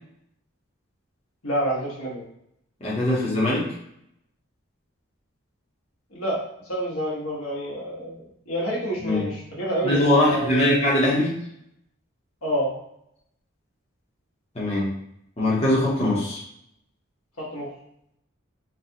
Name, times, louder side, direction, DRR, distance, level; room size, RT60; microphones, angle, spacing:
voice 1, 1.4-2.2 6.1-10.8 12.4-12.7 17.4-17.7, equal, 85° left, -5 dB, 1.3 m, -28 dB
voice 2, 2.8-3.6 9.0-9.2 9.8-11.4 14.5-14.9 15.4-16.4, left 1 dB, 30° left, -7 dB, 0.9 m, -21 dB
4.0 x 2.3 x 2.8 m, 0.75 s
head